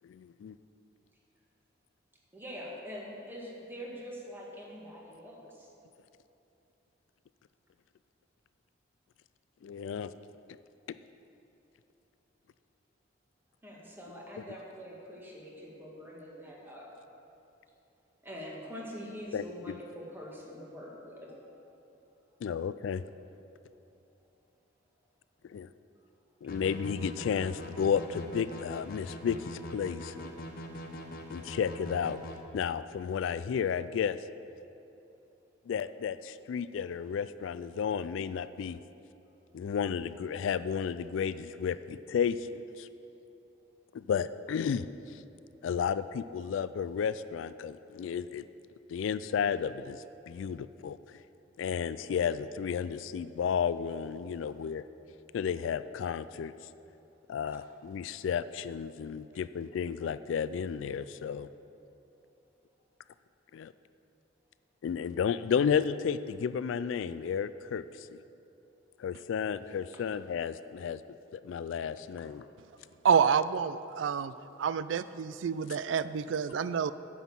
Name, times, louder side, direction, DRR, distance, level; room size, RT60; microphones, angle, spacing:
voice 1, 0.0-0.6 9.6-10.1 19.3-19.8 22.4-23.0 25.4-25.7 26.4-30.3 31.3-32.2 32.5-34.2 35.7-38.8 39.5-42.9 43.9-44.9 45.6-48.4 48.9-51.2 51.6-54.8 55.3-56.5 57.3-61.5 63.5-63.7 64.8-68.2 69.0-71.0 71.3-72.4, left 7 dB, 75° left, 14 dB, 0.3 m, -32 dB
voice 2, 2.3-5.7 13.6-16.9 18.2-21.5, equal, 10° right, -3 dB, 1.7 m, -44 dB
sound 1, 26.5-32.4, equal, 50° left, 0.9 m, -42 dB
voice 3, 73.0-74.3 74.6-76.9, right 7 dB, 70° right, 15 dB, 0.3 m, -28 dB
9.3 x 6.2 x 7.3 m, 3.0 s
head